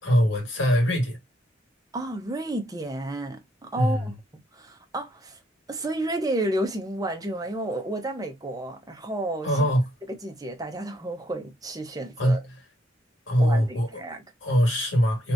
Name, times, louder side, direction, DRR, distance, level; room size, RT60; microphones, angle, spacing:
voice 1, 0.0-1.2 3.8-4.1 9.4-9.9 12.2-12.4 13.3-14.0 14.4-15.3, equal, 75° left, 2.1 m, -22 dB
voice 2, 1.9-4.1 4.5-5.4 5.7-9.7 10.1-12.4 13.4-14.2, right 1 dB, 20° right, 0.8 m, -31 dB
3.4 x 3.0 x 2.6 m
head